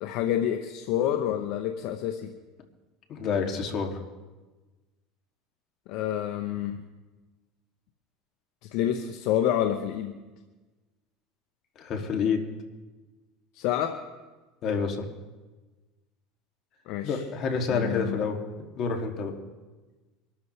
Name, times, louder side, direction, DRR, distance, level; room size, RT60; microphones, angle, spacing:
voice 1, 0.0-2.3 5.9-6.8 8.7-10.1 13.5-14.0 16.9-17.2 17.7-18.2, left 10 dB, 65° left, 7 dB, 1.0 m, -28 dB
voice 2, 3.1-4.0 11.8-12.4 14.6-15.0 17.0-18.4 18.8-19.3, left 5 dB, 50° left, 2 dB, 2.6 m, -28 dB
24.5 x 13.0 x 3.4 m, 1.2 s
supercardioid pair, 100°, 0 cm